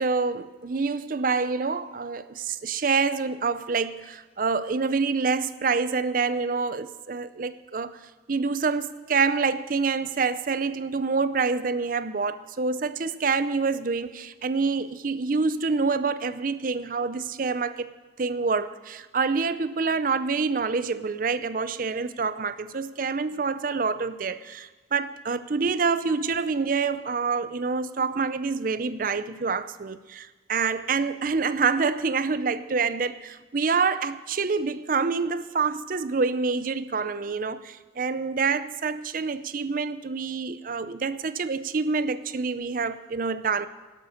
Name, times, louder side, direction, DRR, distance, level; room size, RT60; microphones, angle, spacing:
voice 1, 0.0-8.0 8.3-17.9 18.2-43.7, right 4 dB, 50° right, 14 dB, 0.5 m, -27 dB
12.0 x 11.5 x 6.4 m, 1.2 s
head